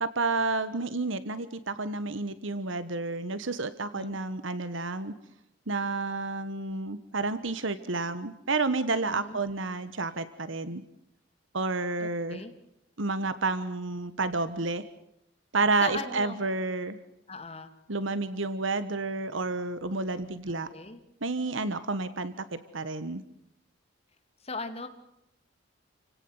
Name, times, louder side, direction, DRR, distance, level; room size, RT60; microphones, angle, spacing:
voice 1, 0.0-5.1 5.7-10.8 11.5-12.4 13.0-14.8 15.5-17.0 17.9-20.7 21.2-23.2, right 3 dB, 70° right, 13 dB, 1.4 m, -30 dB
voice 2, 3.9-4.2 9.0-9.4 12.0-12.5 15.8-16.4 17.3-17.7 20.7-21.0 24.4-24.9, left 3 dB, 30° left, 8 dB, 2.5 m, -38 dB
29.5 x 17.5 x 8.1 m, 0.80 s
head